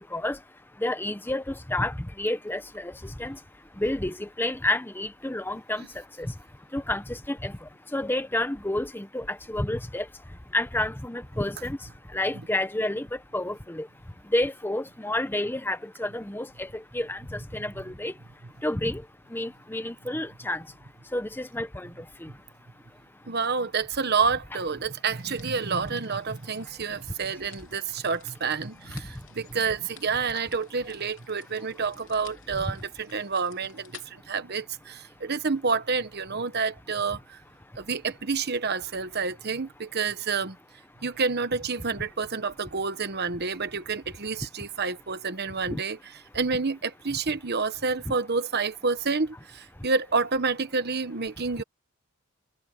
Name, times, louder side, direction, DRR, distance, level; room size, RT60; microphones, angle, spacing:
voice 1, 0.8-3.4 3.8-5.9 6.2-6.3 6.7-10.1 10.5-11.8 12.1-13.9 14.3-18.1 18.6-19.0 19.3-20.6 21.1-22.3 28.9-29.0 45.7-45.8, left 1 dB, 10° left, 0.9 m, -30 dB
voice 2, 23.3-37.4 37.8-40.6 41.0-46.0 46.3-51.6, right 4 dB, 50° right, 1.2 m, -29 dB
sound 1, 25.2-34.1, left 9 dB, 60° left, 3.3 m, -53 dB
head